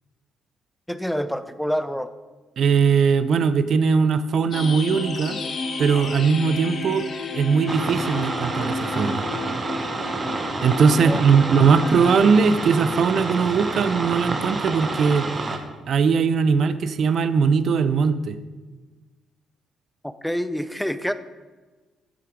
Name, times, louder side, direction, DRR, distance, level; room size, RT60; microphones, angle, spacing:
voice 1, 0.9-2.1 11.0-11.2 20.0-21.1, equal, 5° left, 12 dB, 0.5 m, -27 dB
voice 2, 2.6-5.4 5.8-7.1 7.3-9.2 10.6-15.3 15.9-18.4, right 5 dB, 60° right, 13 dB, 0.5 m, -20 dB
sound 1, 4.5-12.2, left 3 dB, 55° left, 1.2 m, -32 dB
sound 2, 7.7-15.6, right 3 dB, 30° right, 1.1 m, -29 dB
8.4 x 7.8 x 5.1 m, 1.3 s
cardioid pair, 90°, 0 cm